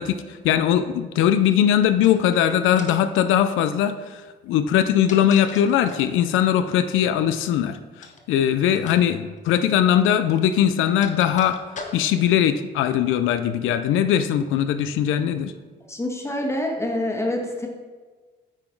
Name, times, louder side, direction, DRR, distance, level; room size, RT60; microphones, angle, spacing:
voice 1, 0.0-7.8 8.3-11.6 11.9-15.5, left 10 dB, 90° left, 10 dB, 0.4 m, -20 dB
sound 1, 2.0-2.4 2.8-3.2 4.7-6.2 8.0-8.3 8.8-9.0 9.3-9.4 10.4-12.3, left 3 dB, 40° left, 1.0 m, -41 dB
voice 2, 15.9-17.7, left 1 dB, 15° left, 2 dB, 1.3 m, -26 dB
8.9 x 3.8 x 4.5 m, 1.4 s
cardioid pair, 90°, 20 cm